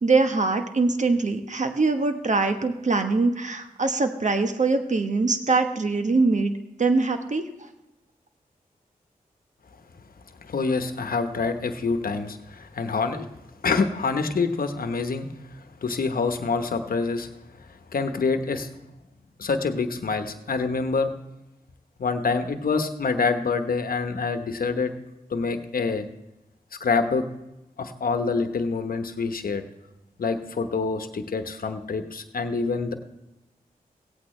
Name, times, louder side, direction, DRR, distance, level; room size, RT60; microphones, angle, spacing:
voice 1, 0.0-6.5 6.8-7.5, right 3 dB, 50° right, 7 dB, 1.2 m, -23 dB
voice 2, 10.4-13.3 13.6-15.3 15.8-17.3 17.9-18.7 19.4-21.1 22.0-24.9 25.3-26.1 26.8-27.2 27.8-29.6 30.2-32.9, left 4 dB, 70° left, 8 dB, 1.0 m, -26 dB
17.0 x 8.6 x 3.2 m, 0.94 s
cardioid pair, 40°, 15 cm